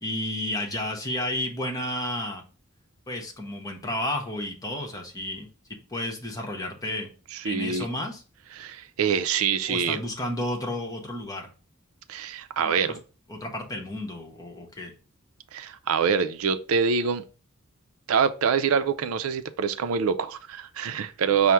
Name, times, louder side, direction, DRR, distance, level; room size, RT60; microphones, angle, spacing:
voice 1, 0.0-2.4 3.1-5.5 5.9-7.1 7.4-8.2 9.7-11.5 12.6-13.0 13.3-14.9, left 1 dB, 15° left, 0.9 m, -32 dB
voice 2, 7.3-7.9 8.5-10.0 12.1-13.0 15.5-17.2 18.1-21.5, right 6 dB, 80° right, 0.4 m, -25 dB
5.6 x 2.1 x 4.6 m
head